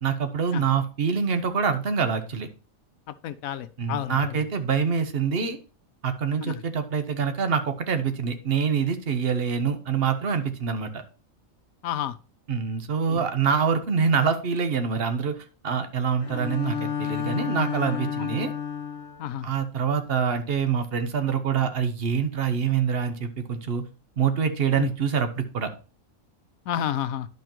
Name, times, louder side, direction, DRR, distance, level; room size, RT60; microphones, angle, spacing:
voice 1, 0.0-2.5 3.8-5.6 6.0-11.0 12.5-15.4 15.6-18.5 19.4-23.8 24.2-25.7, right 6 dB, 50° right, 1.0 m, -25 dB
voice 2, 3.2-4.4 6.4-6.6 11.8-12.1 13.1-13.2 16.3-16.5 18.2-18.3 19.2-19.5 24.8-24.9 26.7-27.3, left 10 dB, 85° left, 1.1 m, -30 dB
Bowed string instrument, 16.2-19.3, left 8 dB, 65° left, 1.4 m, -31 dB
11.0 x 5.4 x 3.0 m
omnidirectional pair, 1.5 m